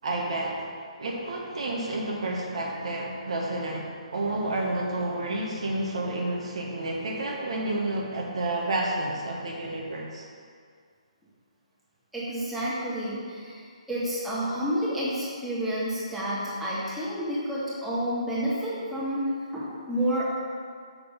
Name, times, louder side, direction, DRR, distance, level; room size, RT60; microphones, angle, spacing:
voice 1, 0.0-0.7 1.0-10.2, right 2 dB, 65° right, -1 dB, 1.4 m, -30 dB
voice 2, 12.1-19.2 19.5-20.2, equal, 5° right, -10 dB, 1.7 m, -30 dB
6.6 x 6.0 x 5.3 m, 2.1 s
hypercardioid pair, 150°, 4 cm